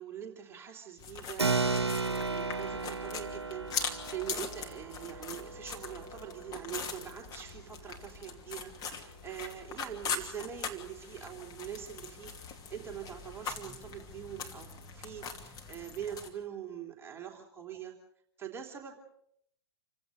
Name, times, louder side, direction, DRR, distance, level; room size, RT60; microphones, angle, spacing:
voice 1, 0.0-17.9 18.4-19.0, right 9 dB, 15° right, 0 dB, 3.3 m, -43 dB
sound 1, 1.0-16.3, left 6 dB, 30° left, 2.9 m, -41 dB
Keyboard (musical), 1.4-7.4, right 4 dB, 90° right, 0.8 m, -35 dB
28.0 x 16.5 x 6.6 m, 0.73 s
figure-of-eight pair, 105°, 13 cm